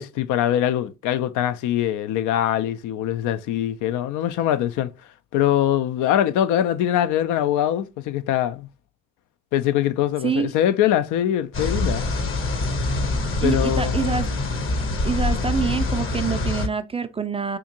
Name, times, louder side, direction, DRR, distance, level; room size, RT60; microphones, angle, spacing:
voice 1, 0.0-4.9 5.3-8.7 9.5-12.0 13.4-14.2, left 11 dB, 60° left, 0.4 m, -23 dB
sound 1, 11.5-16.7, left 2 dB, 40° left, 0.8 m, -24 dB
voice 2, 13.4-14.3 15.0-17.6, right 5 dB, 20° right, 0.4 m, -26 dB
3.8 x 2.5 x 2.8 m
hypercardioid pair, 50°, 34 cm